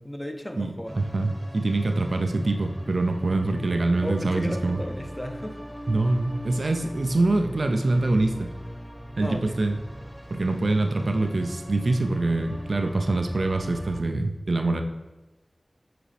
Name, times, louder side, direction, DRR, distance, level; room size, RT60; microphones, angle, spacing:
voice 1, 0.0-1.0 4.0-5.7 9.2-9.8, equal, 20° left, 3 dB, 0.8 m, -35 dB
voice 2, 0.6-4.8 5.9-8.5 9.2-9.8 10.3-14.8, right 2 dB, 80° right, 5 dB, 0.5 m, -24 dB
sound 1, 0.8-14.0, equal, ahead, 1.0 m, -40 dB
7.7 x 5.0 x 3.3 m, 1.1 s
wide cardioid pair, 45°, 0 cm